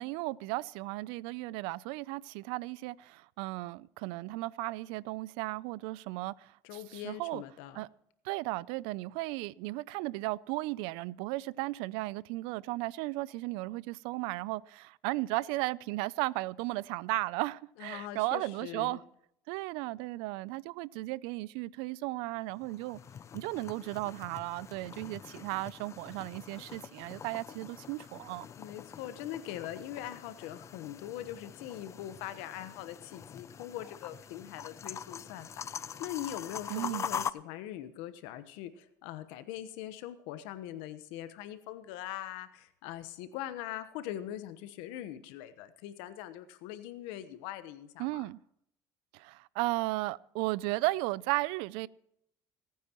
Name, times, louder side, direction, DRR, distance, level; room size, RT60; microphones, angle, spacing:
voice 1, 0.0-7.4 7.7-7.9 8.2-19.0 19.5-23.0 23.3-28.5 36.7-37.1 48.0-48.4 49.1-51.9, right 20 dB, 80° right, 0.4 m, -35 dB
voice 2, 6.6-7.8 17.8-19.0 28.6-48.2, left 12 dB, 80° left, 1.1 m, -42 dB
sound 1, 22.5-37.3, left 7 dB, 35° left, 0.4 m, -44 dB
26.5 x 9.4 x 3.0 m
supercardioid pair, 95°, 9 cm